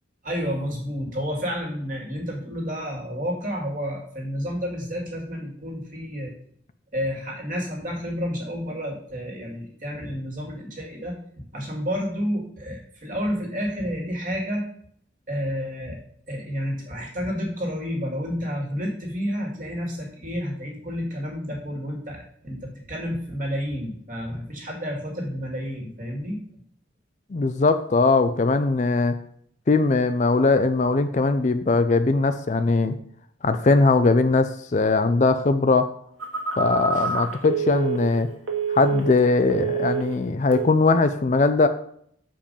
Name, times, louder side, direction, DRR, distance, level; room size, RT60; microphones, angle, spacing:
voice 1, 0.2-6.3 6.9-11.2 11.5-14.6 15.3-16.0 16.3-26.4 36.9-37.1, equal, 40° right, 0 dB, 2.1 m, -30 dB
voice 2, 27.3-29.2 29.7-32.9 33.4-35.9 36.6-38.3 38.7-41.7, left 3 dB, 35° left, 10 dB, 0.4 m, -20 dB
Telephone, 36.2-39.2 39.5-40.2 40.5-40.8, right 5 dB, 85° right, 1.6 m, -27 dB
7.0 x 5.1 x 5.4 m, 0.66 s
head